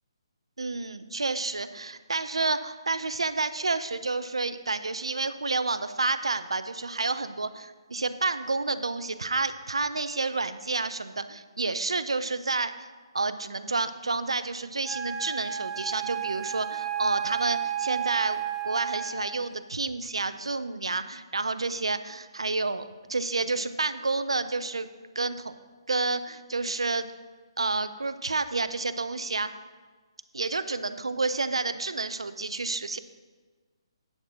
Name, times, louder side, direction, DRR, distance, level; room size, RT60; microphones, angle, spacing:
voice 1, 0.6-12.9 13.1-24.9 25.2-25.5 25.9-27.1 27.6-29.5 30.3-33.0, right 3 dB, 80° right, 12 dB, 0.5 m, -30 dB
Wind instrument woodwind instrument, 14.8-19.4, right 9 dB, ahead, 0.8 m, -32 dB
9.7 x 6.5 x 4.8 m, 1.4 s
figure-of-eight pair, 140°, 3 cm